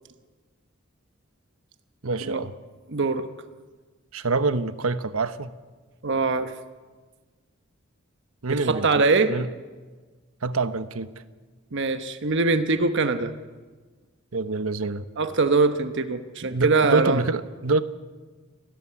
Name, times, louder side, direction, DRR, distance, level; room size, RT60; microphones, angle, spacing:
voice 1, 2.0-2.5 4.1-5.5 8.4-8.9 9.3-9.5 10.4-11.1 14.3-15.1 16.5-17.8, right 3 dB, 85° right, 12 dB, 1.1 m, -26 dB
voice 2, 2.9-3.3 6.0-6.5 8.5-9.3 11.7-13.3 15.2-17.2, right 3 dB, 60° right, 9 dB, 1.1 m, -22 dB
29.5 x 13.5 x 9.9 m, 1.4 s
head